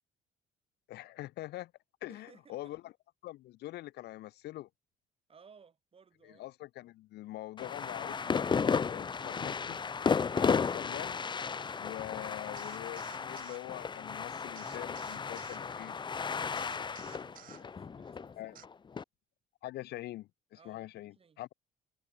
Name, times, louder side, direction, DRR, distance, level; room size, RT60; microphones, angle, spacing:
voice 1, 0.9-1.7 2.0-2.9 3.2-4.7 6.2-9.8 10.2-11.2 11.8-16.0 18.4-18.6 19.6-21.5, left 16 dB, 75° left, 2.1 m, -44 dB
voice 2, 2.1-2.8 5.3-6.5 16.6-18.6 20.5-21.4, right 6 dB, 35° right, 6.8 m, -60 dB
sound 1, 7.6-19.0, left 5 dB, 25° left, 1.0 m, -34 dB
sound 2, 12.6-13.6 14.5-15.6 16.5-17.6 18.5-18.7, right 11 dB, 55° right, 1.5 m, -53 dB
cardioid pair, 110°, 17 cm